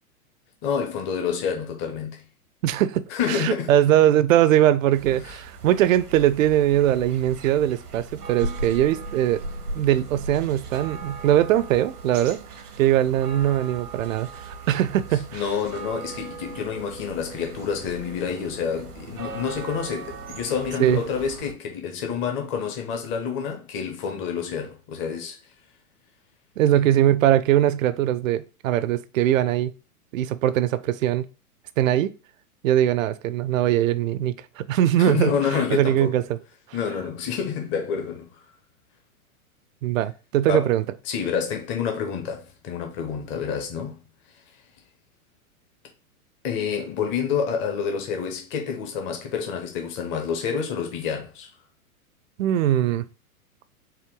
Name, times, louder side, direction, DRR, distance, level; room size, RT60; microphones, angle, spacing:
voice 1, 0.6-2.2 3.1-3.7 5.2-5.3 15.3-25.4 26.7-26.8 35.0-36.2 36.7-38.3 40.5-40.7 41.1-44.0 46.4-51.5, left 6 dB, 25° left, 0.8 m, -28 dB
voice 2, 2.6-9.4 9.7-12.4 12.8-15.5 20.8-21.0 26.6-29.7 30.1-31.3 31.8-32.1 32.6-35.3 35.7-36.4 39.8-40.8 52.4-53.1, right 12 dB, 65° right, 0.5 m, -21 dB
sound 1, 4.9-21.5, right 3 dB, 90° right, 1.0 m, -38 dB
4.4 x 2.2 x 3.7 m
hypercardioid pair, 120°, 44 cm